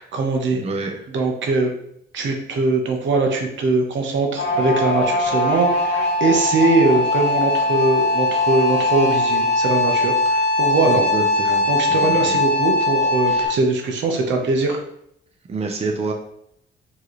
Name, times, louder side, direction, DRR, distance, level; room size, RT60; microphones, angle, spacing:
voice 1, 0.0-0.6 1.1-1.7 2.1-11.0 11.7-14.8, right 3 dB, 70° right, 2 dB, 1.0 m, -21 dB
voice 2, 0.5-0.9 10.8-11.6 11.9-12.4 13.3-13.5 15.5-16.1, right 3 dB, 30° right, 2 dB, 0.7 m, -28 dB
sound 1, 4.4-13.5, left 2 dB, 60° left, 0.9 m, -20 dB
4.5 x 3.1 x 3.1 m, 0.71 s
cardioid pair, 90°, 20 cm